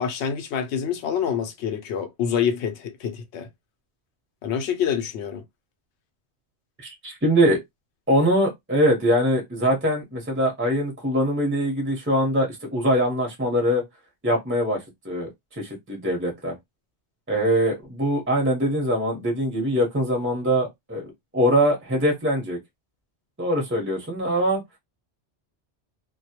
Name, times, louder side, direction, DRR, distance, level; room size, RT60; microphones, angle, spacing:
voice 1, 0.0-3.5 4.4-5.4, left 8 dB, 85° left, 0.9 m, -26 dB
voice 2, 6.8-7.6 8.1-13.8 14.2-14.8 15.0-15.3 15.6-16.5 17.3-21.1 21.3-22.6 23.4-24.6, equal, 15° right, 0.7 m, -22 dB
2.2 x 2.1 x 2.8 m
omnidirectional pair, 1.1 m